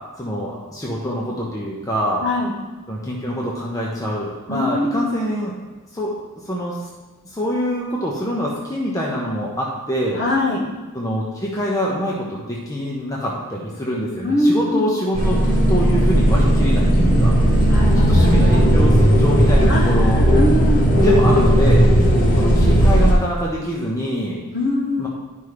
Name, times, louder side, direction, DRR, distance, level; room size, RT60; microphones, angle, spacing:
voice 1, 0.2-2.2 2.9-5.5 5.9-6.1 6.5-6.8 7.2-10.2 10.9-15.4 15.7-17.4 18.0-20.3 20.9-21.9 22.4-24.4 25.0-25.1, equal, 15° left, -4 dB, 1.0 m, -25 dB
voice 2, 2.2-2.5 4.5-5.1 10.1-10.6 14.2-14.8 17.7-18.7 19.7-20.8 24.5-25.1, left 1 dB, 55° left, -4 dB, 2.1 m, -22 dB
sound 1, 15.1-23.1, equal, 40° left, 1.7 m, -15 dB
11.5 x 5.5 x 3.3 m, 1.3 s
head